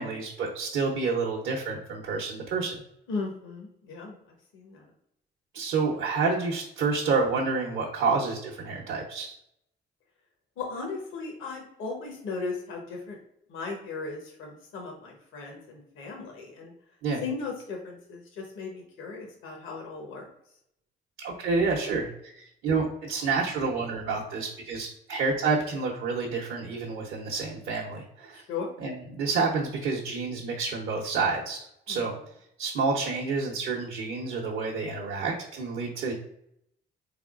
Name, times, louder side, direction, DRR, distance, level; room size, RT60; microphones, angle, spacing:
voice 1, 0.0-2.8 5.5-9.3 17.0-17.2 21.2-28.4 28.8-32.1 32.6-36.1, right 4 dB, 75° right, -2 dB, 0.7 m, -29 dB
voice 2, 3.1-4.2 4.5-4.9 10.6-13.2 13.5-16.7 17.2-20.3 28.3-28.7 31.9-32.0, left 4 dB, 80° left, 1 dB, 0.9 m, -37 dB
3.8 x 3.4 x 2.3 m, 0.75 s
cardioid pair, 90°, 20 cm